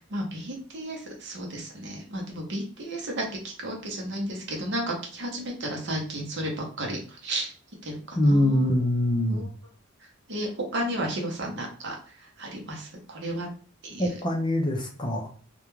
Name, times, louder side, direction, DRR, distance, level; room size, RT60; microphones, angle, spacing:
voice 1, 0.1-7.5 7.8-8.6 9.3-9.5 10.3-12.0 12.4-13.5 13.8-14.1, right 1 dB, 50° right, 0 dB, 0.7 m, -33 dB
voice 2, 8.2-9.5 14.0-15.3, left 1 dB, 20° left, 2 dB, 0.4 m, -24 dB
2.4 x 2.1 x 3.0 m, 0.41 s
head